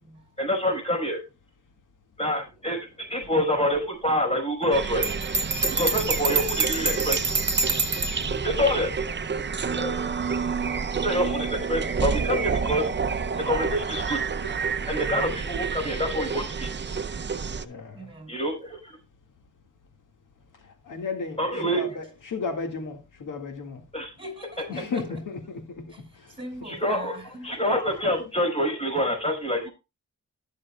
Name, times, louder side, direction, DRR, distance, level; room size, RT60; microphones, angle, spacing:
voice 1, 0.4-1.2 2.2-5.1 5.7-7.2 8.4-8.9 9.7-10.0 11.0-13.0 13.4-14.2 14.9-16.7 18.3-18.9 21.4-21.8 23.9-24.1 26.6-27.2 27.4-29.7, equal, 20° left, 5.0 m, -26 dB
sound 1, 4.7-17.6, right 5 dB, 35° right, 0.7 m, -29 dB
Bell, 5.0-8.2, right 3 dB, 60° right, 1.2 m, -26 dB
voice 2, 8.2-8.6 14.9-15.3 17.6-18.1 20.9-23.8 24.7-25.8, left 4 dB, 90° left, 2.0 m, -34 dB
voice 3, 9.0-9.3 15.4-15.8 17.9-18.4 21.6-21.9 24.2-25.0 25.9-26.0 26.3-27.5, equal, 20° right, 5.4 m, -42 dB
19.5 x 6.6 x 2.3 m
cardioid pair, 70°, 31 cm